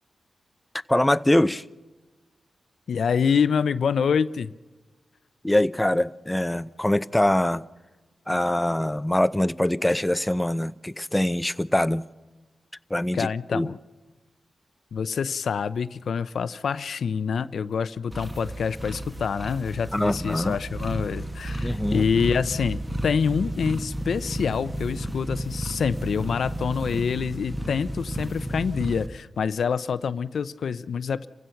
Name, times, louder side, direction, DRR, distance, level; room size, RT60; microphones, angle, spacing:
voice 1, 0.9-1.6 5.4-7.6 8.3-12.0 12.9-13.7 19.9-20.6 21.6-22.1, left 1 dB, 10° left, 0.6 m, -23 dB
voice 2, 2.9-4.5 13.1-13.8 14.9-31.3, left 6 dB, 75° left, 0.5 m, -26 dB
sound 1, 18.1-29.1, right 1 dB, 15° right, 1.6 m, -32 dB
29.5 x 16.0 x 5.8 m
cardioid pair, 70°, 0 cm